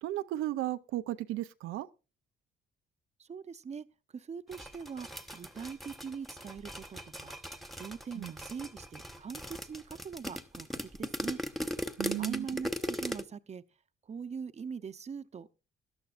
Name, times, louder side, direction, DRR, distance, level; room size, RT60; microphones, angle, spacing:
voice 1, 0.0-1.9 8.2-8.3 12.0-12.5, right 14 dB, 90° right, 0.6 m, -34 dB
voice 2, 3.2-3.9 4.1-5.1 5.3-7.3 7.8-11.4 12.2-13.6 14.1-15.6, right 6 dB, 35° right, 0.8 m, -42 dB
sound 1, 4.5-13.2, equal, ahead, 1.1 m, -38 dB
18.0 x 12.0 x 2.5 m
cardioid pair, 90°, 20 cm